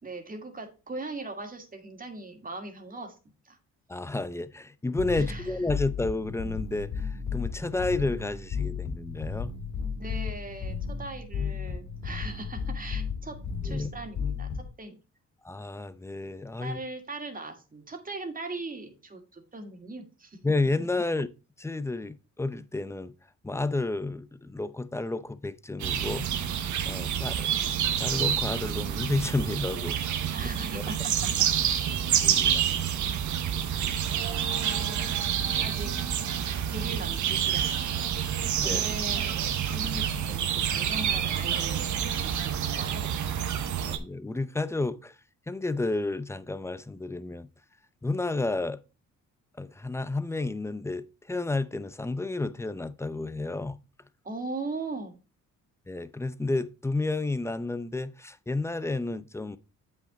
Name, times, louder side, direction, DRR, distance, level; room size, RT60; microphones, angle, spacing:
voice 1, 0.0-3.2 3.4-3.6 5.2-5.6 10.0-13.4 13.6-15.0 16.6-20.4 30.3-31.1 31.4-31.5 32.5-32.6 34.5-35.9 36.7-38.0 38.6-39.3 39.7-43.4 54.2-55.2, right 2 dB, 30° right, 2.2 m, -40 dB
voice 2, 3.9-9.5 13.6-13.9 15.4-16.8 20.4-21.3 21.6-23.1 23.4-26.3 26.8-27.5 28.0-30.3 30.7-30.9 31.9-32.8 38.4-38.8 43.8-45.2 45.5-47.5 48.0-48.8 49.6-53.8 55.9-59.6, left 2 dB, 10° left, 0.6 m, -31 dB
sound 1, 5.0-14.7, left 6 dB, 70° left, 2.0 m, -34 dB
sound 2, 25.8-44.0, right 9 dB, 75° right, 1.2 m, -28 dB
7.7 x 5.9 x 3.8 m
cardioid pair, 90°, 30 cm